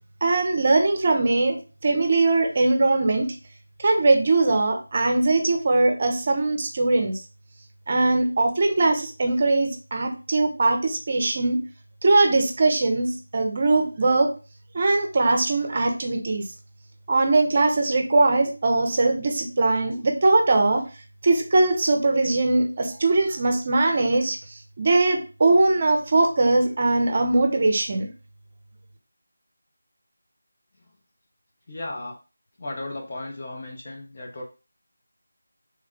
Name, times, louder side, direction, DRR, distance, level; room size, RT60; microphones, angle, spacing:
voice 1, 0.2-1.6 1.8-3.4 3.8-7.2 7.9-11.6 12.0-14.3 14.7-16.5 17.1-20.8 21.2-28.1, right 2 dB, 35° right, 5 dB, 0.5 m, -21 dB
voice 2, 31.7-32.1 32.6-34.4, left 2 dB, 40° left, 0 dB, 0.8 m, -35 dB
3.2 x 2.2 x 3.6 m, 0.32 s
figure-of-eight pair, 165°, 0 cm